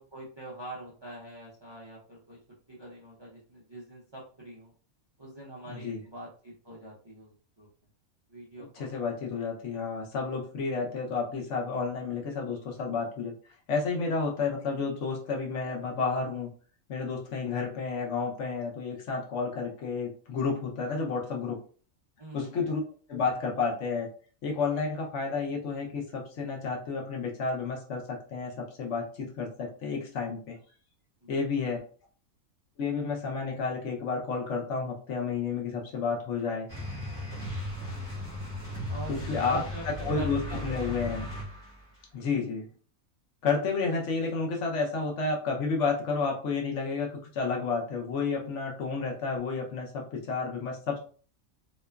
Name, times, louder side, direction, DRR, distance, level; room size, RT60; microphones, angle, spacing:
voice 1, 0.0-2.4 2.7-4.7 5.2-7.7 8.3-8.9 22.2-22.5 31.2-31.4 38.9-41.0, right 1 dB, 40° right, -5 dB, 0.4 m, -45 dB
voice 2, 5.7-6.0 8.6-13.3 13.7-16.5 16.9-21.6 22.3-22.8 23.1-24.1 24.4-30.6 31.3-31.8 32.8-36.7 39.1-41.2 42.1-42.6 43.4-51.0, left 4 dB, 65° left, 0 dB, 0.9 m, -31 dB
sound 1, 36.7-41.8, equal, 15° left, 0.8 m, -36 dB
2.9 x 2.2 x 2.2 m, 0.42 s
omnidirectional pair, 1.5 m